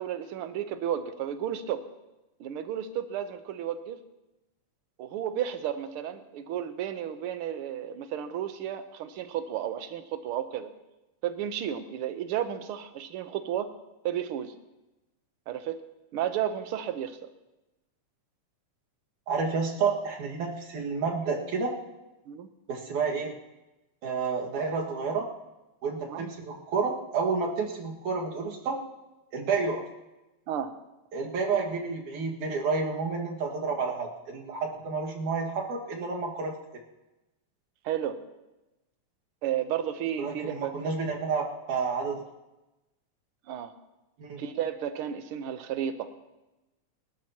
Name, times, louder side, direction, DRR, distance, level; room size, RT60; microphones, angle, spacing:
voice 1, 0.0-1.9 2.4-4.0 5.0-10.7 11.2-13.7 14.0-14.5 15.5-15.8 16.1-17.2 22.3-22.5 26.1-26.2 30.5-30.8 37.8-38.2 39.4-40.7 43.5-43.7 44.4-46.1, right 10 dB, 65° right, 9 dB, 1.4 m, -32 dB
voice 2, 19.3-21.8 22.7-23.3 24.0-25.3 25.8-28.8 29.3-29.8 31.1-36.5 40.2-42.2 44.2-44.4, right 4 dB, 85° right, 0 dB, 3.4 m, -30 dB
26.5 x 12.5 x 3.0 m, 1.0 s
omnidirectional pair, 3.4 m